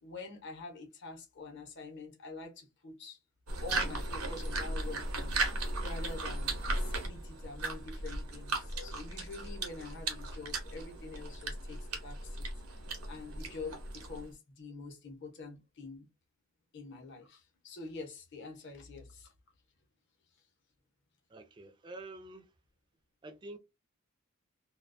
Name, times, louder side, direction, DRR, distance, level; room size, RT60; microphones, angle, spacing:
voice 1, 0.0-3.2 3.6-5.4 5.8-12.5 13.1-16.1 16.7-19.3, left 3 dB, 50° left, 0.7 m, -46 dB
sound 1, 3.5-14.3, right 2 dB, 85° right, 0.8 m, -37 dB
voice 2, 21.3-22.5 23.2-23.6, right 2 dB, 20° right, 0.3 m, -47 dB
2.3 x 2.2 x 2.4 m
head